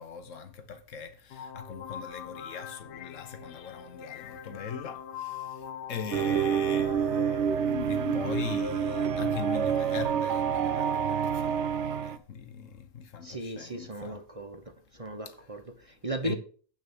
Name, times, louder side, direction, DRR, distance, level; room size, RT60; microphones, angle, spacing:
voice 1, 0.0-14.2 16.2-16.4, left 6 dB, 50° left, 1.3 m, -41 dB
sound 1, 1.3-10.0, left 7 dB, 75° left, 1.3 m, -40 dB
sound 2, 6.1-12.2, right 8 dB, 70° right, 0.6 m, -28 dB
voice 2, 13.2-14.6 14.9-16.3, right 1 dB, 25° right, 0.8 m, -36 dB
8.6 x 6.3 x 6.1 m
omnidirectional pair, 1.9 m